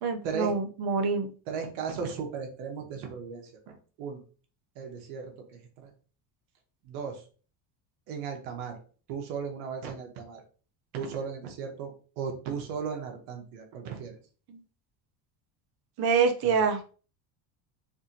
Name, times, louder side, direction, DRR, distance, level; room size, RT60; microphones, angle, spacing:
voice 1, 0.0-1.3 14.5-14.6 16.0-16.8, right 5 dB, 50° right, 5 dB, 0.7 m, -26 dB
voice 2, 1.5-4.2 4.8-5.9 6.8-7.2 8.1-8.8 9.1-10.4 10.9-14.2 16.4-16.6, right 6 dB, 85° right, 3 dB, 1.0 m, -36 dB
3.4 x 2.5 x 2.8 m, 0.38 s
cardioid pair, 115°, 49 cm